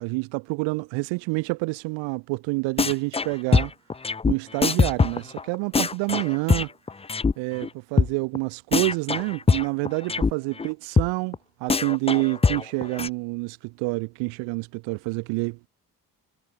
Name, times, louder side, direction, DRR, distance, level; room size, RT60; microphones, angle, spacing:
voice 1, 0.0-3.7 4.3-6.7 7.4-15.7, right 26 dB, 80° right, 1.0 m, -28 dB
sound 1, 2.8-3.3 3.5-7.3 7.6-7.7 8.0-8.1 8.4-8.5 8.7-10.3 10.6-10.7 11.0-11.1 11.3-11.4 11.7-13.1, left 4 dB, 15° left, 0.5 m, -22 dB
hypercardioid pair, 50°, 44 cm